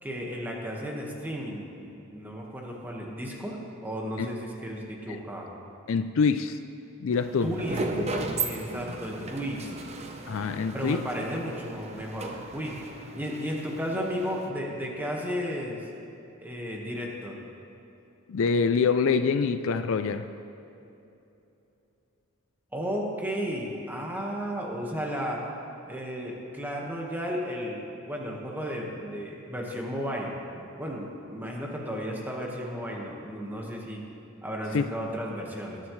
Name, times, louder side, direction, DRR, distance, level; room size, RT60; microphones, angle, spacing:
voice 1, 0.0-3.6 3.8-5.5 7.4-7.8 8.3-9.7 10.7-12.8 13.1-15.8 16.4-17.4 22.7-25.4 25.9-34.0 34.4-35.8, equal, 10° right, -2 dB, 1.5 m, -34 dB
voice 2, 5.9-6.6 7.0-7.5 10.3-11.0 18.3-20.3 34.7-34.9, left 5 dB, 60° left, 10 dB, 0.4 m, -25 dB
sound 1, 7.1-14.5, right 2 dB, 30° right, 0.8 m, -36 dB
19.5 x 10.5 x 3.2 m, 2.9 s
head